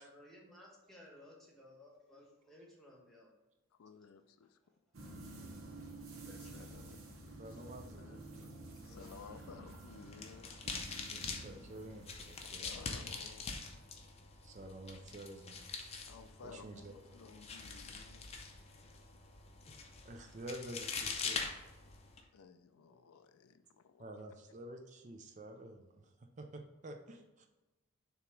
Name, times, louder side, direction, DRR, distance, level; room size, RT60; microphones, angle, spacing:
voice 1, 0.0-3.3 4.6-4.8 6.3-6.7 8.9-9.1, left 1 dB, ahead, -3 dB, 1.1 m, -58 dB
voice 2, 3.8-4.6 6.3-7.6 7.9-10.6 12.4-13.6 16.1-18.4 22.3-24.1, left 5 dB, 85° left, 10 dB, 0.4 m, -56 dB
sound 1, 4.9-12.8, right 2 dB, 75° right, 1.0 m, -51 dB
voice 3, 7.4-8.2 11.1-12.7 14.4-15.8 16.4-16.9 20.0-21.5 24.0-27.5, right 1 dB, 35° right, 4 dB, 0.4 m, -49 dB
sound 2, 9.9-22.2, left 4 dB, 30° left, 0.5 m, -44 dB
6.9 x 3.0 x 4.5 m, 1.0 s
head